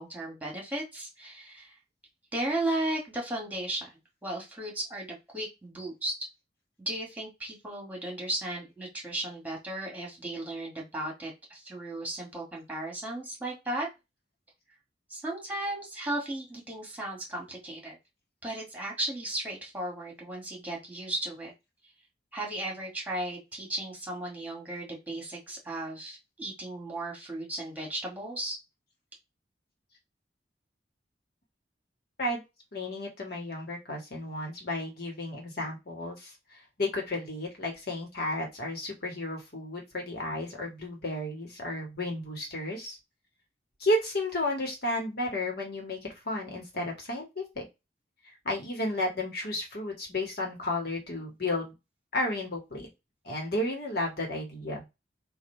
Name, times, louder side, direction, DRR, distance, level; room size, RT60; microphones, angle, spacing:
voice 1, 0.0-1.7 2.3-3.9 4.2-6.1 6.8-13.9 15.1-18.0 18.4-21.5 22.3-28.6, right 1 dB, 10° right, -2 dB, 1.9 m, -35 dB
voice 2, 32.7-36.3 36.8-43.0 43.8-47.6 48.4-51.7 52.1-52.9 53.2-54.8, left 1 dB, 60° left, 1 dB, 1.7 m, -32 dB
3.7 x 2.7 x 4.5 m, 0.23 s
head